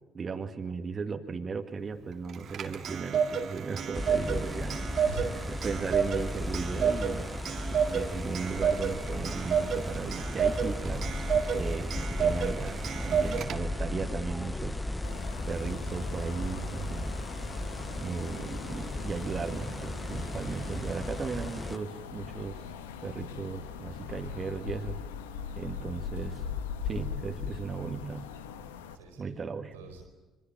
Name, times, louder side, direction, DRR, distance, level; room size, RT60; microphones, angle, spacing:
voice 1, 0.1-5.1 5.5-7.3 7.6-17.1 18.0-22.7 23.0-25.0 25.6-26.5 26.8-28.3 29.2-29.7, right 5 dB, 40° right, 5 dB, 2.0 m, -36 dB
Clock, 2.3-13.9, right 7 dB, 60° right, 2.0 m, -31 dB
sound 1, 3.9-21.8, left 1 dB, 15° left, 1.1 m, -35 dB
voice 2, 4.9-5.4 15.7-16.0 20.6-20.7 28.6-29.4 29.7-30.0, right 5 dB, 90° right, 7 dB, 4.6 m, -46 dB
sound 2, 15.0-29.0, left 7 dB, 90° left, 1.3 m, -41 dB
26.5 x 23.0 x 7.6 m, 1.2 s
hypercardioid pair, 55°, 0 cm